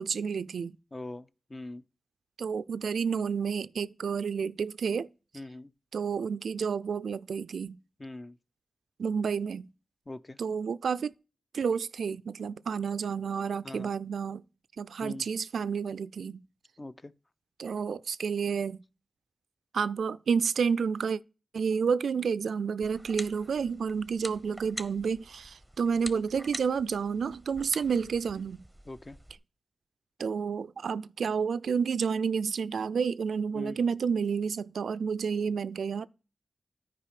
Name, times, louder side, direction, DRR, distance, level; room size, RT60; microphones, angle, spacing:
voice 1, 0.0-0.8 2.4-5.1 5.9-7.8 9.0-9.7 10.4-11.1 11.5-14.4 14.8-16.4 17.6-18.8 19.7-21.2 21.5-28.6 30.2-36.1, right 6 dB, 85° right, 0.3 m, -30 dB
voice 2, 0.9-1.8 5.3-5.7 8.0-8.4 10.1-10.4 13.6-13.9 15.0-15.3 16.8-17.1 28.9-29.2 33.5-33.8, left 2 dB, 30° left, 0.5 m, -42 dB
sound 1, 22.8-29.4, right 1 dB, 5° right, 0.8 m, -45 dB
10.0 x 4.8 x 4.9 m
cardioid pair, 55°, 0 cm